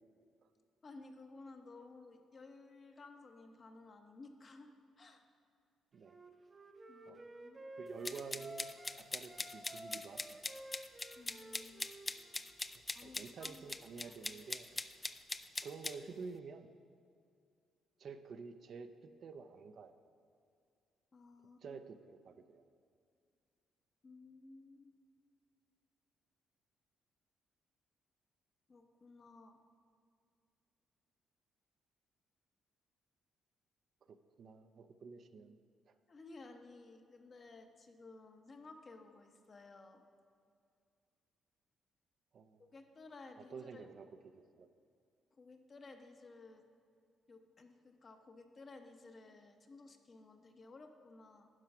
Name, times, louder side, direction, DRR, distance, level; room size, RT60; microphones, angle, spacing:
voice 1, 0.8-5.2 6.9-7.7 11.2-11.9 12.9-13.6 14.0-14.2 21.1-21.8 24.0-24.9 28.7-29.6 36.1-40.0 42.6-43.9 45.4-46.6 47.3-51.5, left 3 dB, 40° left, 5 dB, 0.9 m, -56 dB
Wind instrument woodwind instrument, 6.0-9.0 9.3-12.6, right 1 dB, 25° right, 0.7 m, -53 dB
voice 2, 7.8-10.4 13.0-14.7 15.6-16.7 18.0-19.9 21.6-22.6 34.1-35.6 35.9-36.0 42.3-42.6 43.5-44.1 44.3-44.7, right 5 dB, 60° right, 9 dB, 0.5 m, -50 dB
sound 1, 8.0-16.0, left 2 dB, 20° left, 0.3 m, -42 dB
10.5 x 4.7 x 6.0 m, 2.3 s
cardioid pair, 90°, 0 cm